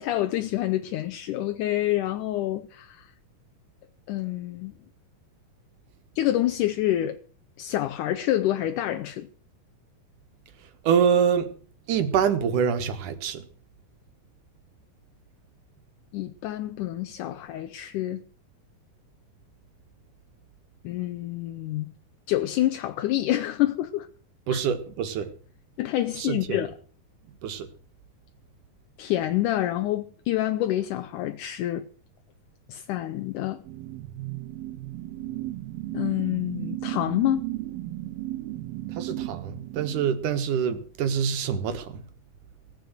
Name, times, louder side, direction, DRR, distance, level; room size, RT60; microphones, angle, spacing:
voice 1, 0.0-3.1 4.1-4.7 6.2-7.2 7.6-9.3 16.1-18.2 20.8-21.9 22.3-24.1 24.5-24.6 25.8-26.7 29.0-31.9 32.7-33.6 35.9-37.5, left 14 dB, 75° left, 2.1 m, -27 dB
voice 2, 10.8-11.5 11.9-13.4 24.5-25.3 26.1-26.7 27.4-27.7 38.9-42.0, right 7 dB, 65° right, 2.8 m, -25 dB
sound 1, 33.6-40.4, right 16 dB, 85° right, 2.7 m, -35 dB
18.0 x 7.8 x 8.1 m
omnidirectional pair, 4.1 m